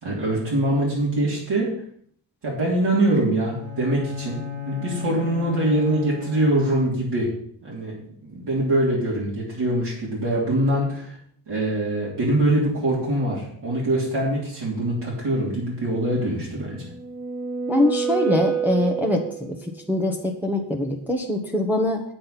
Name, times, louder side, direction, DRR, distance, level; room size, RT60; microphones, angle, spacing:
voice 1, 0.0-1.7 2.4-7.3 7.6-7.9 8.2-11.2 11.5-16.8, right 1 dB, 60° right, -5 dB, 3.4 m, -23 dB
Bowed string instrument, 3.5-7.2, left 8 dB, 80° right, 2.1 m, -34 dB
sound 1, 16.6-19.7, right 6 dB, 40° right, 0.8 m, -28 dB
voice 2, 17.7-19.6 19.9-22.0, left 1 dB, 5° right, 0 dB, 1.1 m, -23 dB
8.8 x 8.7 x 5.8 m, 0.62 s
wide cardioid pair, 140°, 45 cm